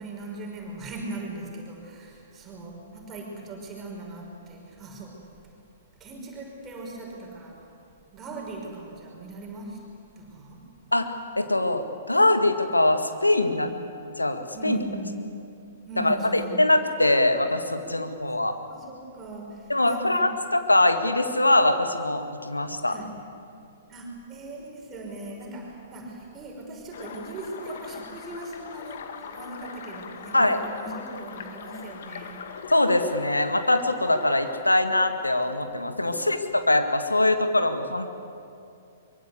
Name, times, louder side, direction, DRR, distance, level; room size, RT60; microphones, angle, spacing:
voice 1, 0.0-5.3 6.0-7.7 8.1-9.9 10.2-10.7 13.6-13.7 14.5-15.2 15.9-16.7 17.8-18.2 18.7-20.3 22.9-23.2 23.9-32.5 36.1-36.5, right 2 dB, 20° right, -1 dB, 6.0 m, -39 dB
voice 2, 10.9-13.7 14.2-14.8 16.0-18.5 19.7-23.0 30.3-30.6 32.7-38.1, left 2 dB, 85° left, 7 dB, 2.1 m, -23 dB
sound 1, 26.9-34.6, left 6 dB, 55° left, 2.2 m, -41 dB
24.0 x 23.5 x 8.3 m, 2.6 s
figure-of-eight pair, 115°, 0 cm